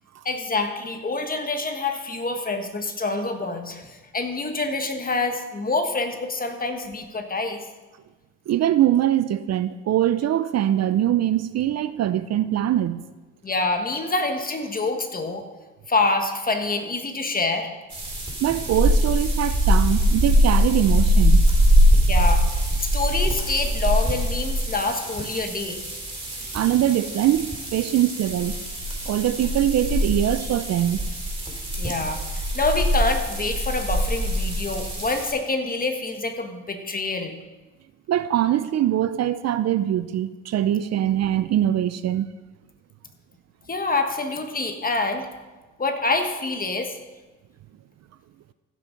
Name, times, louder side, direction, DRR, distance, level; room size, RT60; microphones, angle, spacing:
voice 1, 0.2-7.6 13.4-15.4 15.9-17.7 22.1-22.4 22.8-25.8 31.8-37.4 43.7-45.3 45.8-46.9, left 3 dB, 30° left, 1.4 m, -26 dB
voice 2, 8.5-13.1 18.4-21.5 26.5-28.6 29.1-31.0 38.1-42.3, right 12 dB, 60° right, 0.5 m, -22 dB
sound 1, 17.9-35.3, equal, 15° right, 3.9 m, -22 dB
15.5 x 6.4 x 5.2 m
cardioid pair, 90°, 30 cm